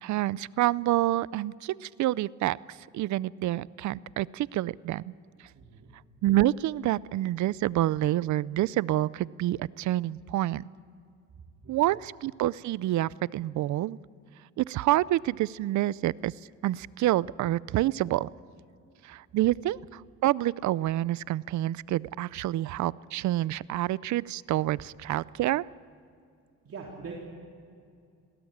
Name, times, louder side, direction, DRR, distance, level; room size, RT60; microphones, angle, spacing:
voice 1, 0.0-5.1 6.2-10.7 11.7-14.0 14.6-16.3 16.6-18.3 19.0-25.6, right 15 dB, 70° right, 21 dB, 0.5 m, -28 dB
voice 2, 5.5-5.9 11.3-11.8 26.6-27.2, right 4 dB, 50° right, -2 dB, 3.5 m, -43 dB
20.5 x 17.5 x 8.7 m, 2.4 s
cardioid pair, 90°, 30 cm